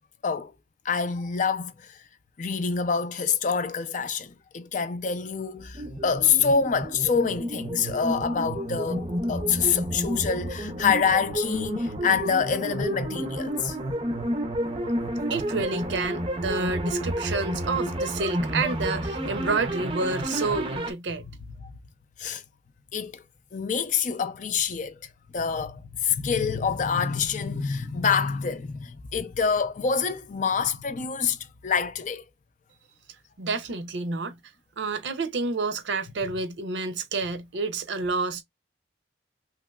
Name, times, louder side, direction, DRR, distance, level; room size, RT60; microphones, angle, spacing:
voice 1, 0.8-2.0 2.4-13.8 21.6-21.7 22.2-22.4 22.9-23.2 23.5-25.0 25.3-32.2, left 6 dB, 40° left, 0.4 m, -26 dB
sound 1, 5.7-20.9, equal, 30° right, 0.5 m, -30 dB
voice 2, 15.3-21.2 33.4-34.4 34.8-38.4, right 3 dB, 75° right, 0.6 m, -29 dB
3.1 x 2.9 x 2.3 m
head